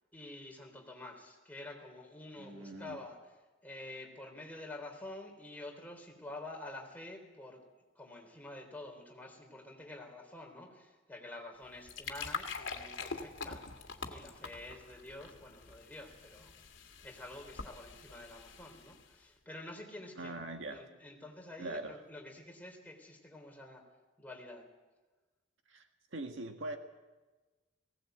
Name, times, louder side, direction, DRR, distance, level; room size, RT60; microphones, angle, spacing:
voice 1, 0.1-3.2 3.6-7.6 8.0-16.5 17.0-20.4 20.7-23.8 24.2-24.7, left 2 dB, 10° left, 1 dB, 3.6 m, -48 dB
voice 2, 2.4-3.0 20.2-20.8 21.6-22.0 25.7-26.8, right 2 dB, 75° right, 5 dB, 1.8 m, -42 dB
sound 1, 11.6-19.2, left 5 dB, 75° left, 2.0 m, -45 dB
19.5 x 17.5 x 8.0 m, 1.2 s
head